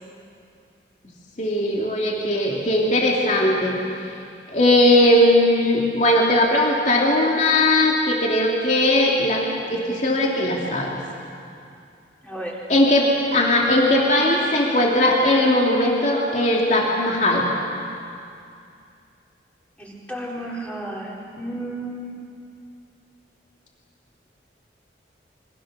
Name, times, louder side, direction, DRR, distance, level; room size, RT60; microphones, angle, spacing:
voice 1, 1.4-3.8 4.5-11.0 12.7-17.5, left 1 dB, 40° left, -2 dB, 3.0 m, -19 dB
voice 2, 12.2-12.6 19.8-22.1, right 1 dB, 5° left, -4 dB, 4.3 m, -33 dB
28.0 x 24.5 x 6.8 m, 2.5 s
head